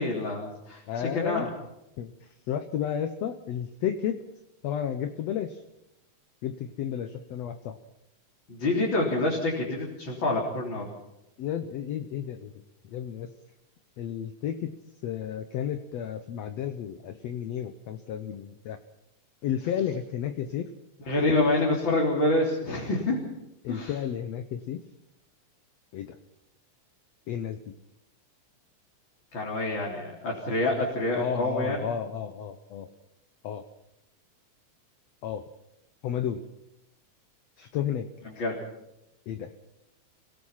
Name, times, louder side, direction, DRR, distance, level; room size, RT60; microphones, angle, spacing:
voice 1, 0.0-1.5 8.5-10.9 21.1-23.2 23.7-23.9 29.3-31.8 38.3-38.6, left 2 dB, 40° left, -3 dB, 4.2 m, -27 dB
voice 2, 0.9-1.5 2.0-4.2 4.6-5.6 6.4-7.8 11.4-12.5 12.8-13.3 14.0-14.7 15.0-18.8 19.4-20.7 23.6-24.8 25.9-26.2 27.3-27.7 31.1-32.9 33.4-33.6 35.2-35.5 36.0-36.4 37.6-38.1 39.3-39.5, left 9 dB, 65° left, 8 dB, 2.0 m, -32 dB
29.5 x 18.0 x 5.7 m, 0.88 s
omnidirectional pair, 3.5 m